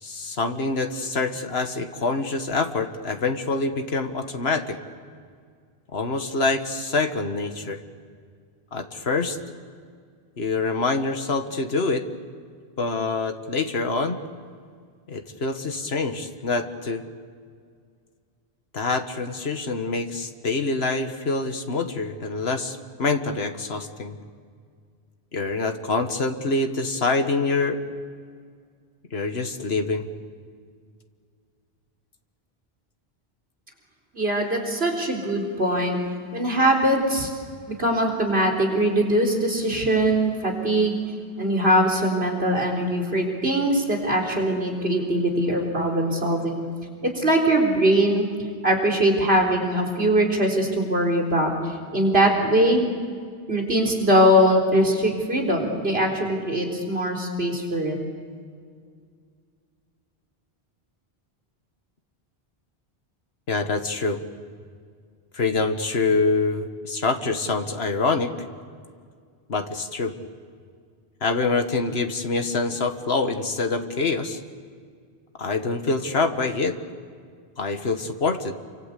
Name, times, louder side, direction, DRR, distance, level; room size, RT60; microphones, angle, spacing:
voice 1, 0.0-4.8 5.9-7.8 8.7-9.4 10.4-12.1 12.8-14.2 15.1-17.0 18.7-24.2 25.3-27.8 29.1-30.1 63.5-64.2 65.3-68.3 69.5-70.1 71.2-74.4 75.4-76.8 77.6-78.5, left 3 dB, 80° left, 6 dB, 1.8 m, -25 dB
voice 2, 34.1-36.0 36.3-37.3 37.7-41.0 41.4-46.6 47.0-48.3 48.6-52.8 53.5-58.0, right 1 dB, 80° right, 0 dB, 4.3 m, -21 dB
29.0 x 24.5 x 8.3 m, 2.1 s
omnidirectional pair, 1.0 m